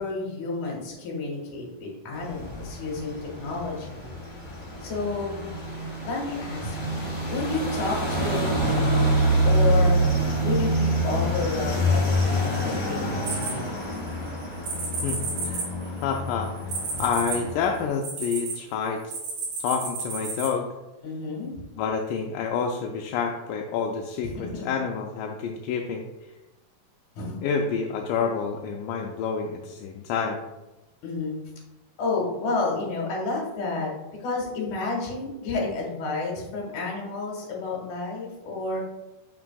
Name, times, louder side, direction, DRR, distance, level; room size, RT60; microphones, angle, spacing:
voice 1, 0.0-4.1 4.8-5.4 6.1-8.8 9.5-10.0 10.4-13.7 16.9-17.0 21.0-21.6 24.2-24.7 27.2-27.4 31.0-31.4 32.0-33.9 34.2-38.8, left 3 dB, 70° left, -1 dB, 2.8 m, -30 dB
sound 1, 2.1-17.9, right 1 dB, 30° left, 1.5 m, -26 dB
sound 2, 13.2-14.1 14.6-18.5 19.1-20.5, right 4 dB, 80° right, 3.3 m, -32 dB
voice 2, 15.0-16.5 17.0-19.0 19.6-20.7 21.8-26.0 27.4-30.4, left 6 dB, 85° left, 1 dB, 2.1 m, -28 dB
7.2 x 6.0 x 2.3 m, 1.0 s
omnidirectional pair, 3.8 m